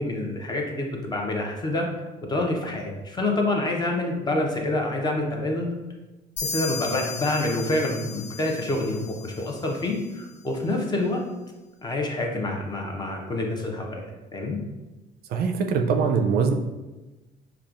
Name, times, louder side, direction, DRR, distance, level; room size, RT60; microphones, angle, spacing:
voice 1, 0.0-1.9 2.2-5.7 6.4-11.2 11.8-14.6, left 2 dB, 25° left, 1 dB, 0.7 m, -27 dB
sound 1, 6.4-10.0, left 5 dB, 90° left, 1.0 m, -36 dB
voice 2, 15.3-16.5, right 5 dB, 65° right, 4 dB, 0.4 m, -22 dB
5.4 x 2.3 x 2.4 m, 1.1 s
cardioid pair, 110°, 17 cm